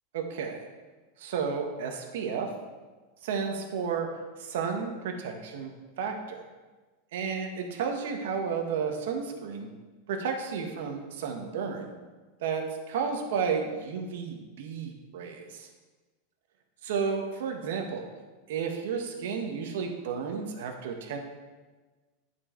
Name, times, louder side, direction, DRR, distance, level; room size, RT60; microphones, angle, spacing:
voice 1, 0.1-0.7 1.2-2.5 3.2-4.1 4.4-5.7 6.0-6.4 7.1-9.7 10.1-11.9 12.4-15.7 16.9-18.1 18.5-21.2, right 6 dB, 75° right, 3 dB, 1.3 m, -32 dB
10.5 x 4.8 x 4.5 m, 1.3 s
supercardioid pair, 165°, 0 cm